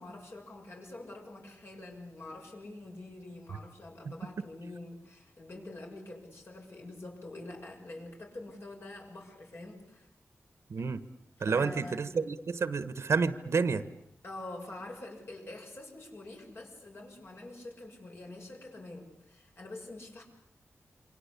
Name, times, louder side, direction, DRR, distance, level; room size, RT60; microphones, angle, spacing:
voice 1, 0.0-10.1 11.4-12.1 14.2-20.2, left 2 dB, 55° left, 1 dB, 6.9 m, -46 dB
voice 2, 10.7-11.0 11.4-13.8, right 5 dB, 75° right, 13 dB, 1.3 m, -30 dB
27.5 x 25.5 x 8.5 m, 0.78 s
wide cardioid pair, 110°, 5 cm